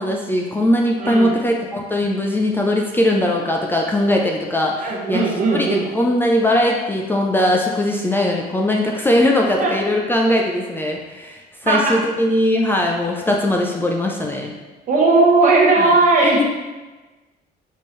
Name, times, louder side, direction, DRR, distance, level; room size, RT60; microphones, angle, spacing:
voice 1, 0.0-14.5 15.8-15.9 16.2-16.5, left 1 dB, 10° left, 0 dB, 0.4 m, -20 dB
voice 2, 1.0-1.3 4.8-5.8 9.6-9.7 11.6-11.9 14.9-16.4, right 3 dB, 50° right, -1 dB, 1.0 m, -16 dB
4.3 x 3.5 x 3.1 m, 1.2 s
cardioid pair, 110°, 17 cm